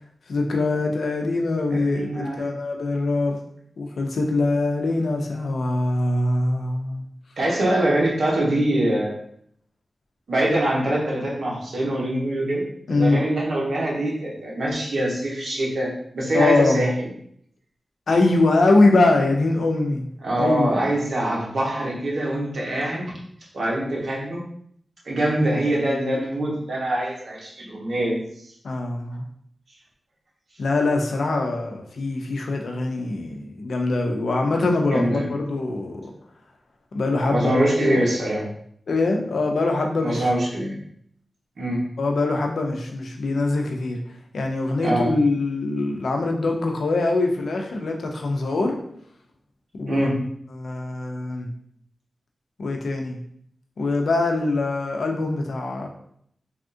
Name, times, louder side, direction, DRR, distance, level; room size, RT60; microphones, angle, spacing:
voice 1, 0.3-3.4 3.8-7.0 12.9-13.2 16.3-16.9 18.1-20.1 20.4-20.7 28.6-29.2 30.6-36.1 36.9-38.0 38.9-40.3 42.0-44.0 44.3-48.8 49.7-50.1 50.5-51.5 52.6-53.2 53.8-55.9, left 2 dB, 80° left, 2 dB, 0.5 m, -23 dB
voice 2, 1.7-2.5 7.4-9.1 10.3-12.6 12.9-17.1 20.2-23.1 23.5-24.4 25.1-28.2 34.9-35.3 37.3-38.4 40.0-40.7 41.6-41.8 44.8-45.1 49.9-50.2, right 1 dB, 70° right, -4 dB, 0.9 m, -24 dB
3.4 x 2.4 x 2.6 m, 0.68 s
wide cardioid pair, 100°, 0 cm